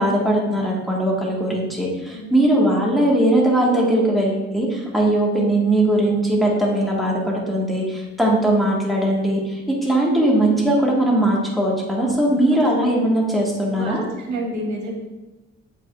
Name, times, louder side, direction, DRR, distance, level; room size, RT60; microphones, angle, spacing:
voice 1, 0.0-14.0, right 1 dB, ahead, -4 dB, 1.7 m, -20 dB
voice 2, 12.0-12.4 13.8-14.9, right 2 dB, 75° right, -1 dB, 1.6 m, -29 dB
7.6 x 5.0 x 2.5 m, 1.1 s
cardioid pair, 90°, 30 cm